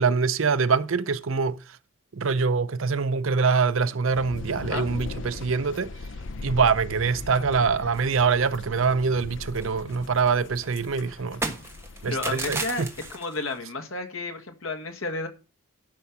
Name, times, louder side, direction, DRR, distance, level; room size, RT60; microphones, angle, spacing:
voice 1, 0.0-1.6 2.1-5.9 6.4-11.6 12.0-12.9, right 5 dB, 75° right, 0.7 m, -24 dB
sound 1, 4.1-13.1, left 3 dB, 60° left, 0.6 m, -40 dB
sound 2, 4.9-5.4 5.8-5.9 6.2-6.4 6.6-7.2 7.5-8.9 9.2-13.6, right 3 dB, 10° right, 1.3 m, -37 dB
voice 2, 12.1-12.8 13.1-15.3, left 3 dB, 80° left, 1.8 m, -32 dB
12.0 x 5.6 x 5.9 m
head